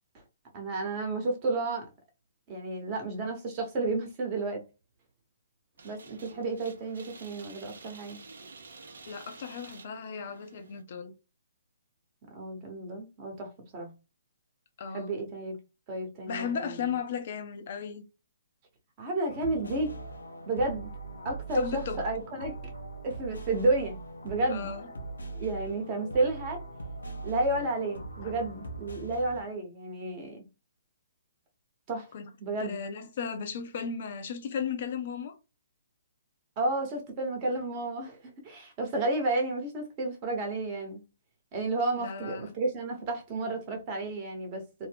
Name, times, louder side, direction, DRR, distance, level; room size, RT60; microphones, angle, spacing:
voice 1, 0.5-1.9 2.5-4.6 5.8-8.2 12.3-13.9 14.9-15.6 15.9-16.8 19.0-19.9 20.5-20.9 21.2-22.7 23.0-24.0 24.2-24.7 25.4-26.6 27.2-30.4 31.9-32.1 32.4-32.8 36.6-41.0 41.5-44.9, right 2 dB, 30° right, 1.0 m, -31 dB
sound 1, 5.8-10.8, right 4 dB, 70° right, 0.5 m, -50 dB
voice 2, 9.1-11.1 14.8-15.1 16.3-18.0 21.5-22.1 24.5-24.9 28.2-28.3 32.1-32.3 32.6-35.4 42.0-42.5, left 6 dB, 50° left, 0.6 m, -35 dB
sound 2, 19.3-29.4, right 3 dB, 85° left, 0.7 m, -41 dB
2.6 x 2.1 x 3.3 m
hypercardioid pair, 135°, 0 cm